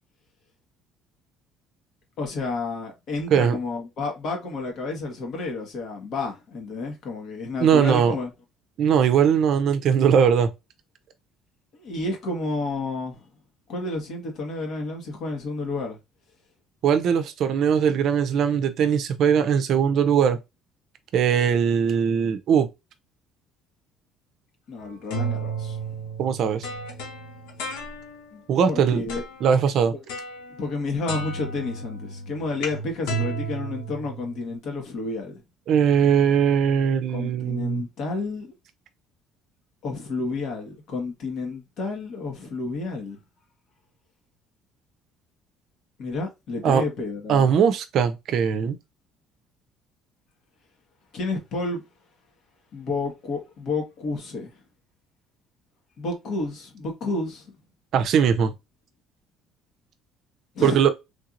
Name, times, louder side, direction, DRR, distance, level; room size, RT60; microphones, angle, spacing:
voice 1, 2.2-8.3 11.7-13.3 13.7-16.0 24.7-25.8 28.3-29.2 29.9-30.0 30.6-35.4 37.1-38.5 39.8-43.2 46.0-47.5 51.1-51.8 52.7-54.6 56.0-57.5 60.5-60.8, left 3 dB, 60° left, 1.4 m, -30 dB
voice 2, 7.6-8.1 8.8-10.5 16.8-20.4 21.1-22.7 26.2-26.7 28.5-29.0 29.4-29.9 35.7-37.8 46.6-46.8 47.3-48.8 57.9-58.5 60.6-60.9, right 7 dB, 60° right, 0.5 m, -20 dB
sound 1, 24.8-28.4 29.1-29.6 30.1-30.8 31.1-34.6, right 3 dB, 85° left, 0.8 m, -33 dB
3.3 x 2.8 x 2.5 m
supercardioid pair, 85°, 0 cm